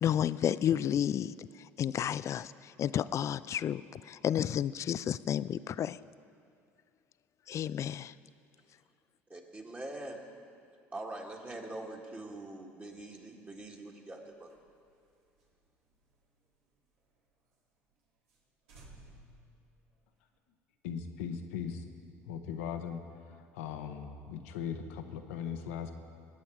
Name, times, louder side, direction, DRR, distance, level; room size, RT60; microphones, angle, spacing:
voice 1, 0.0-1.5 1.8-6.0 7.5-8.1, left 10 dB, 45° left, 17 dB, 0.4 m, -31 dB
voice 2, 9.3-10.2 10.9-14.5, right 2 dB, 25° right, -1 dB, 1.9 m, -43 dB
sound 1, 14.4-17.2 17.5-17.6 17.9-18.0 18.3-18.4 18.7-20.4, right 2 dB, 85° right, 2.6 m, -58 dB
voice 3, 20.8-21.8 22.2-23.0 23.3-25.9, left 7 dB, 85° left, 6 dB, 1.0 m, -39 dB
20.5 x 8.7 x 4.6 m, 2.3 s
hypercardioid pair, 75°, 7 cm